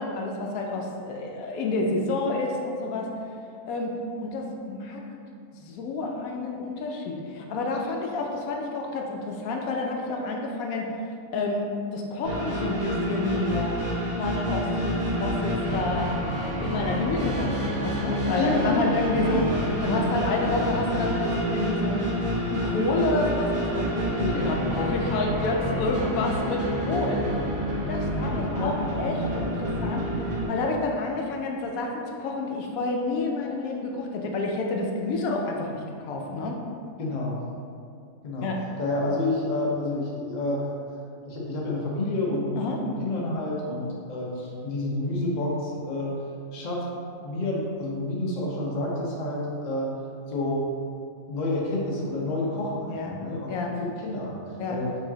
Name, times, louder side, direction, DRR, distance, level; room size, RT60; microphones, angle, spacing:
voice 1, 0.0-3.1 3.7-5.1 5.5-10.9 11.3-13.8 14.2-16.1 16.6-19.4 19.8-22.1 22.5-27.2 27.7-36.6 38.4-38.6 42.6-42.8 52.9-53.2 53.5-53.8 54.6-54.8, left 2 dB, 85° left, 1 dB, 1.0 m, -29 dB
sound 1, 12.2-30.5, equal, 70° right, 1.6 m, -28 dB
voice 2, 18.3-18.9 19.2-19.5 24.2-24.5 28.3-28.8 37.0-37.4 38.2-38.5 38.8-40.7 41.2-46.1 46.5-46.8 47.2-49.9 50.3-50.6 51.3-53.5 54.0-54.4 54.7-54.9, left 2 dB, 40° left, -4 dB, 0.7 m, -29 dB
4.8 x 3.8 x 2.7 m, 2.4 s
omnidirectional pair, 1.5 m